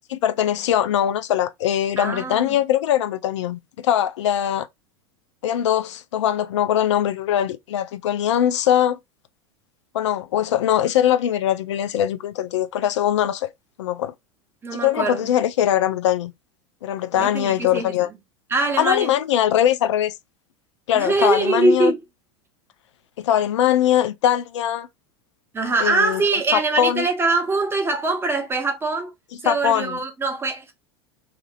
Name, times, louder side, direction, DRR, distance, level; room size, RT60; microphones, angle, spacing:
voice 1, 0.1-4.7 5.4-9.0 9.9-13.5 13.8-14.1 14.7-16.3 16.8-18.1 18.8-20.2 20.9-21.9 23.2-24.9 25.8-27.1 29.4-30.0, left 11 dB, 80° left, 0.5 m, -21 dB
voice 2, 2.0-2.6 14.6-15.3 17.2-17.9 18.5-19.1 20.9-22.0 25.5-29.1 29.4-30.7, right 3 dB, 15° right, 1.0 m, -22 dB
2.8 x 2.5 x 2.4 m
hypercardioid pair, 105°, 15 cm